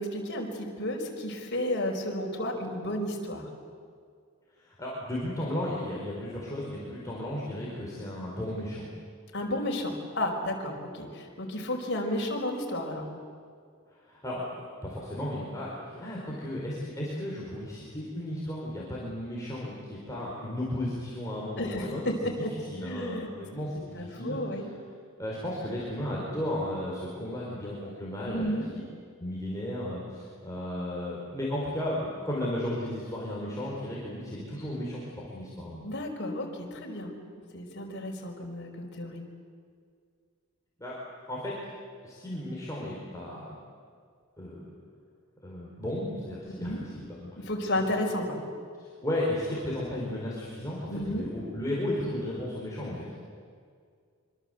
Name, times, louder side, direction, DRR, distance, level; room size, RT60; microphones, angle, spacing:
voice 1, 0.0-3.5 9.3-13.1 21.6-22.5 22.8-23.3 23.9-24.7 28.3-28.7 35.8-37.1 37.5-39.2 46.6-46.8 47.3-48.4 50.9-51.3, left 1 dB, 55° left, 1 dB, 5.0 m, -32 dB
voice 2, 4.6-8.9 13.9-24.4 25.2-28.5 29.2-35.8 40.8-41.0 41.3-41.6 42.0-43.6 44.4-44.6 45.4-47.5 47.8-47.9 48.8-53.1, left 1 dB, 15° left, -5 dB, 4.8 m, -34 dB
25.5 x 25.0 x 8.1 m, 2.1 s
head